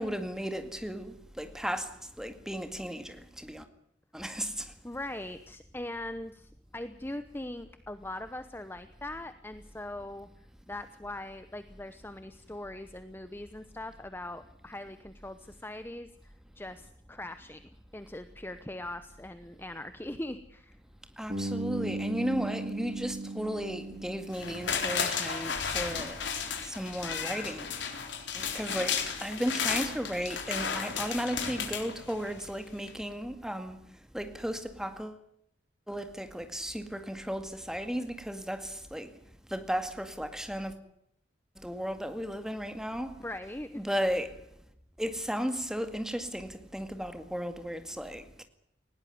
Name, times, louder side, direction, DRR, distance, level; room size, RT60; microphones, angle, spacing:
voice 1, 0.0-3.6 4.1-4.7 21.2-26.2 26.6-27.7 28.3-33.8 34.1-35.2 35.9-39.1 39.5-40.7 41.6-43.1 43.8-44.4 45.0-48.4, equal, 5° right, 2.0 m, -35 dB
voice 2, 4.8-10.3 10.7-17.6 17.9-20.8 43.2-43.8, left 1 dB, 10° left, 0.9 m, -41 dB
Bass guitar, 21.3-25.2, right 2 dB, 40° right, 3.8 m, -37 dB
sound 1, 24.3-32.5 32.9-33.0, left 6 dB, 85° left, 3.9 m, -34 dB
19.5 x 17.5 x 9.4 m
head